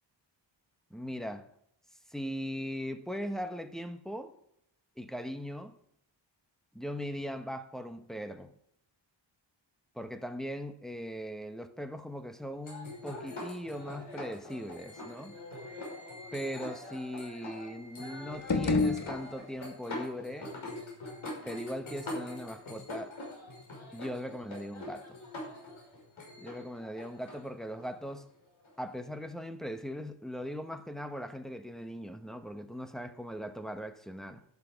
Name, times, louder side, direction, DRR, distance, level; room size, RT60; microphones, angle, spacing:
voice 1, 0.9-1.5 2.1-4.3 5.0-5.8 6.7-8.5 9.9-15.4 16.3-20.5 21.4-23.2 23.9-25.1 26.4-28.3 28.8-34.4, equal, ahead, 1.0 m, -39 dB
sound 1, 12.6-29.0, left 1 dB, 85° left, 5.8 m, -44 dB
sound 2, 18.3-19.8, left 3 dB, 40° left, 1.4 m, -30 dB
12.0 x 11.5 x 5.2 m
wide cardioid pair, 140°, 47 cm